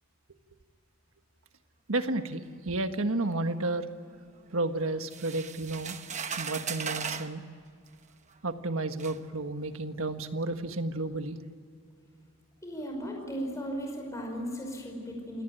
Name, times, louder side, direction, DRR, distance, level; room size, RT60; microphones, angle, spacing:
voice 1, 1.9-3.8 4.5-6.0 6.4-7.4 8.4-11.4, right 2 dB, 70° right, 8 dB, 1.5 m, -31 dB
sound 1, 5.1-7.3 8.3-8.4 9.0-9.2, right 6 dB, 30° right, 1.1 m, -37 dB
voice 2, 12.6-15.4, equal, 15° left, 1 dB, 5.3 m, -36 dB
28.0 x 18.5 x 9.0 m, 2.3 s
head